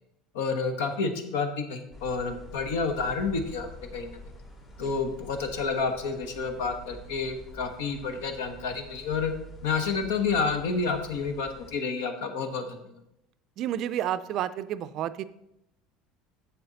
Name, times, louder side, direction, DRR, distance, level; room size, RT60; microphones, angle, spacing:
voice 1, 0.3-4.2 4.8-9.3 9.6-12.8, left 4 dB, 75° left, 7 dB, 1.0 m, -29 dB
sound 1, 1.9-11.7, equal, 40° left, 3.0 m, -47 dB
voice 2, 13.6-15.2, right 11 dB, 55° right, 15 dB, 0.4 m, -30 dB
7.2 x 6.9 x 4.0 m, 0.82 s
hypercardioid pair, 75°, 0 cm